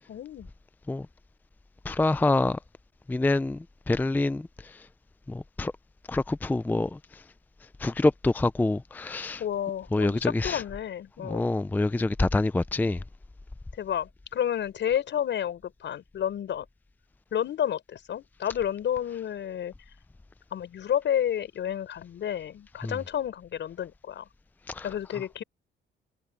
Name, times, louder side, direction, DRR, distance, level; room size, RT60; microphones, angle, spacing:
voice 1, 0.1-0.5 9.4-11.5 13.8-16.6 17.3-19.7 20.5-24.3 24.8-25.4, left 10 dB, 65° left, 6.4 m, -30 dB
voice 2, 1.9-2.6 3.1-4.5 5.3-5.7 6.1-7.0 7.8-9.4 9.9-10.6 11.2-13.0 22.8-22.9 24.7-24.9, left 2 dB, 10° left, 0.4 m, -26 dB
cardioid pair, 90°, 20 cm